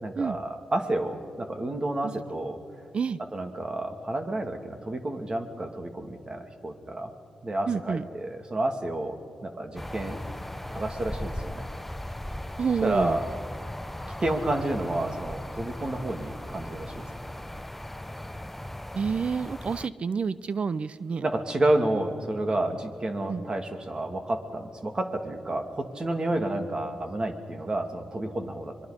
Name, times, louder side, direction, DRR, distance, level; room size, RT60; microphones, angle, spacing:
voice 1, 0.0-2.6 3.3-7.1 7.4-9.2 9.4-10.2 10.7-11.6 12.8-13.2 14.2-17.0 21.2-28.7, right 1 dB, 35° right, 6 dB, 2.5 m, -30 dB
voice 2, 7.7-8.1 12.6-13.2 18.9-21.2 23.3-23.5, right 5 dB, 55° right, 16 dB, 0.5 m, -28 dB
sound 1, 9.8-19.9, left 1 dB, 10° left, 0.6 m, -37 dB
26.5 x 21.5 x 5.2 m, 2.6 s
cardioid pair, 60°, 2 cm